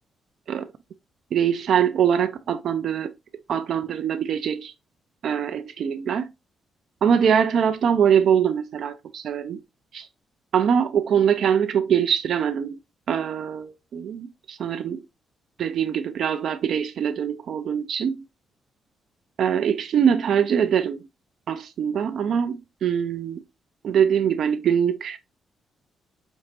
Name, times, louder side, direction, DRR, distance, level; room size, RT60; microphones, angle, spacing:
voice 1, 1.3-3.1 3.5-4.7 5.2-6.3 7.0-9.6 9.9-10.1 10.5-12.8 13.1-15.0 15.6-18.2 19.4-21.0 21.5-23.4 23.8-25.2, right 8 dB, 60° right, 0.3 m, -23 dB
4.3 x 2.9 x 2.7 m
cardioid pair, 130°, 0 cm